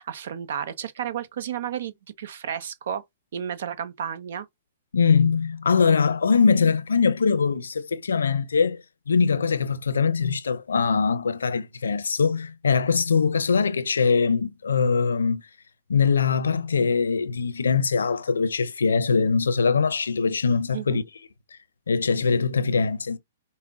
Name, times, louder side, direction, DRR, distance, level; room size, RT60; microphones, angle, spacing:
voice 1, 0.0-3.0 3.3-4.5 20.7-21.0, right 9 dB, 70° right, 0.7 m, -32 dB
voice 2, 4.9-8.8 9.1-15.4 15.9-21.0 21.9-23.2, left 5 dB, 90° left, 0.6 m, -22 dB
5.6 x 2.1 x 3.6 m
hypercardioid pair, 130°, 0 cm